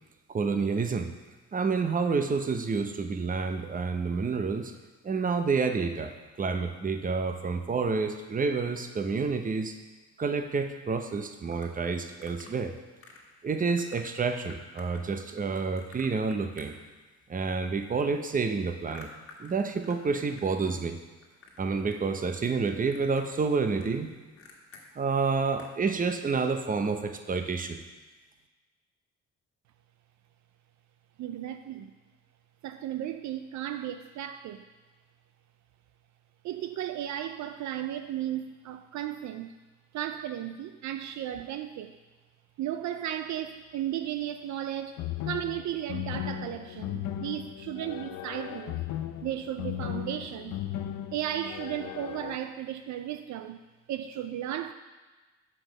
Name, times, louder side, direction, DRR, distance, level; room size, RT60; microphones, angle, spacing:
voice 1, 0.3-1.1 1.5-4.7 5.0-6.1 6.4-9.8 10.2-12.7 13.4-16.7 17.3-19.1 19.4-20.9 21.6-24.1 25.0-27.8, right 4 dB, 30° right, 7 dB, 0.7 m, -29 dB
sound 1, 11.5-12.6 13.0-13.3 13.6-14.0 14.5-17.3 17.5-20.5 20.7-21.6 21.9-22.4 22.7-24.8 25.2-25.3 25.6-25.8, left 4 dB, 45° left, 1.6 m, -52 dB
voice 2, 31.2-31.9 32.6-34.6 36.4-39.5 39.9-41.9 42.6-45.0 45.2-48.8 49.2-50.6 51.1-53.6 53.9-54.7, right 11 dB, 70° right, 9 dB, 0.4 m, -35 dB
sound 2, 45.0-52.4, left 12 dB, 80° left, 0.5 m, -36 dB
5.9 x 5.0 x 6.5 m, 1.2 s
cardioid pair, 90°, 30 cm